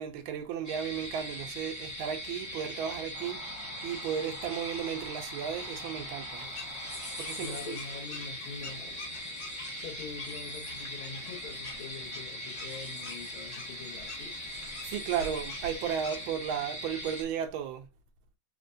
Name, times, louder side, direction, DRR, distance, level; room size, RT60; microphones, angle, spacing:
voice 1, 0.0-3.5 3.8-6.5 7.2-7.8 14.8-17.9, right 8 dB, 85° right, 1.4 m, -34 dB
sound 1, 0.6-17.2, equal, 20° left, 0.5 m, -40 dB
sound 2, 3.1-8.2, right 1 dB, 60° right, 1.7 m, -50 dB
sound 3, 6.3-16.3, left 4 dB, 65° left, 1.7 m, -48 dB
voice 2, 7.3-8.9 9.8-14.4, left 5 dB, 90° left, 1.9 m, -44 dB
4.1 x 2.2 x 2.5 m
omnidirectional pair, 2.2 m